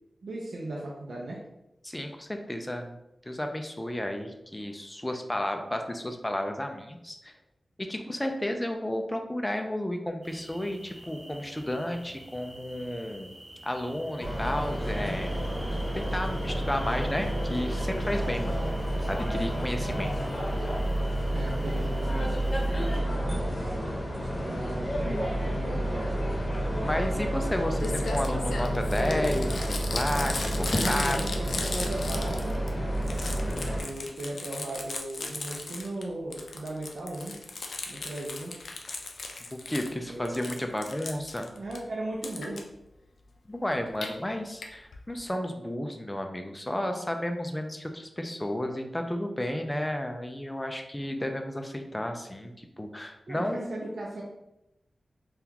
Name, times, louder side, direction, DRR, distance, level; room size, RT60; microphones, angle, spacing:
voice 1, 0.2-1.4 19.7-20.4 21.2-22.5 22.9-26.3 30.6-32.6 33.8-37.3 37.9-38.6 40.1-40.3 41.5-42.6 53.3-54.2, right 1 dB, 80° right, -3 dB, 0.5 m, -37 dB
voice 2, 1.8-2.9 3.3-7.3 7.8-13.3 13.6-15.4 15.9-18.5 19.1-20.1 26.5-31.2 39.5-41.5 43.5-53.7, left 1 dB, 15° left, 5 dB, 0.4 m, -32 dB
sound 1, 10.2-23.0, right 1 dB, 30° right, 0.7 m, -49 dB
sound 2, 14.2-33.8, right 1 dB, 40° left, 0.9 m, -30 dB
Crumpling crinkling, 27.5-27.6 27.8-32.7 33.0-36.0 36.3-39.9 40.3-41.8 42.2-42.6 43.7-44.1 44.6-44.7 44.9-45.0 45.2-45.3, left 3 dB, 80° left, 0.4 m, -36 dB
3.6 x 2.3 x 2.8 m, 0.90 s
wide cardioid pair, 110°, 0 cm